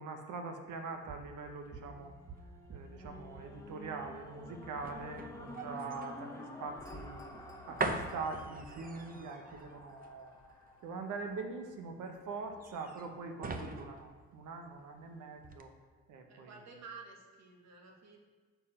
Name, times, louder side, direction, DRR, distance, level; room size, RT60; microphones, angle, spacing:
voice 1, 0.0-2.1 2.7-7.2 7.7-10.3 10.8-15.7 16.1-16.5, right 4 dB, 80° right, 5 dB, 0.9 m, -43 dB
sound 1, 0.7-15.1 15.4-15.6, right 3 dB, 30° right, 0.7 m, -44 dB
sound 2, 1.7-12.0 12.6-12.7, left 1 dB, 10° left, 1.0 m, -50 dB
voice 2, 16.3-18.2, right 4 dB, 60° right, 1 dB, 1.4 m, -52 dB
7.0 x 4.6 x 4.3 m, 1.4 s
cardioid pair, 90°, 30 cm